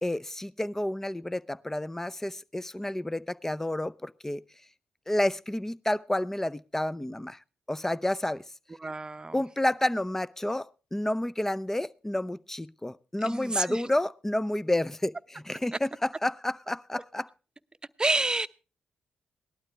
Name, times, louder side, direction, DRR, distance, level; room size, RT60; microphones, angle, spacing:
voice 1, 0.0-4.4 5.1-7.4 7.7-8.4 9.3-17.3, left 1 dB, 10° left, 0.6 m, -30 dB
voice 2, 8.8-9.4 10.4-10.5 13.2-13.9 15.7-15.8 16.9-17.0 18.0-18.5, right 2 dB, 25° right, 0.9 m, -29 dB
18.5 x 12.0 x 3.3 m
hypercardioid pair, 45°, 3 cm